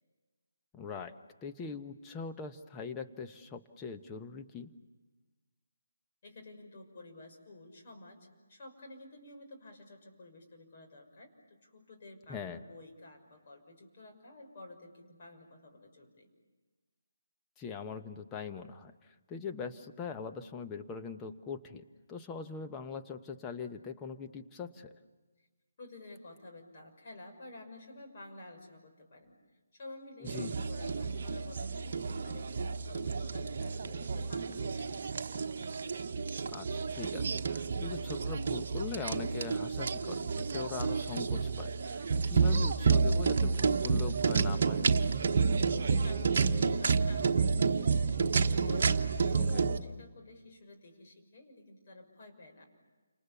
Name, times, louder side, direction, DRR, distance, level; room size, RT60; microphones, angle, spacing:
voice 1, 0.7-1.1 1.4-4.7 12.3-12.6 17.6-25.0 30.2-30.5 36.5-44.9 49.3-49.7, left 5 dB, 15° left, 6 dB, 1.1 m, -42 dB
voice 2, 6.2-16.3 25.8-29.4 29.7-35.3 45.7-52.6, left 2 dB, 40° left, 2 dB, 6.0 m, -51 dB
sound 1, 30.3-49.8, right 5 dB, 45° right, 1.2 m, -30 dB
30.0 x 27.0 x 7.1 m, 1.3 s
figure-of-eight pair, 150°, 0 cm